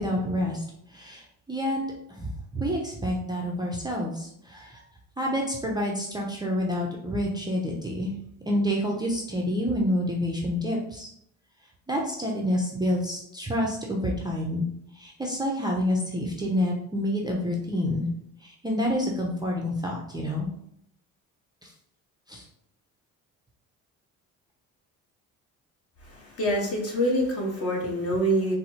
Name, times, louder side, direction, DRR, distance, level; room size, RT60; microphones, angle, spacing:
voice 1, 0.0-1.8 2.1-4.8 5.2-8.1 8.5-11.1 11.9-14.7 14.9-18.1 18.4-20.5 21.6-21.7 22.3-22.4, equal, 10° right, -2 dB, 0.5 m, -28 dB
voice 2, 26.0-28.6, equal, 45° left, -1 dB, 1.2 m, -26 dB
4.1 x 2.0 x 2.8 m, 0.72 s
cardioid pair, 95°, 34 cm